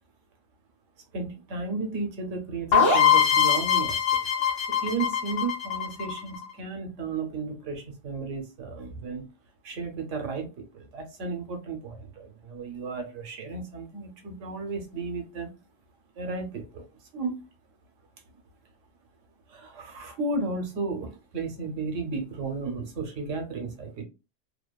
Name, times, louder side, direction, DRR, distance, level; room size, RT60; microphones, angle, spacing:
voice 1, 1.1-9.2 9.6-15.5 16.1-16.8 17.1-17.4 19.5-24.0, right 3 dB, 85° right, 5 dB, 1.1 m, -34 dB
sound 1, 2.7-6.5, left 7 dB, 35° left, 0.5 m, -22 dB
2.8 x 2.2 x 2.3 m, 0.28 s
omnidirectional pair, 1.2 m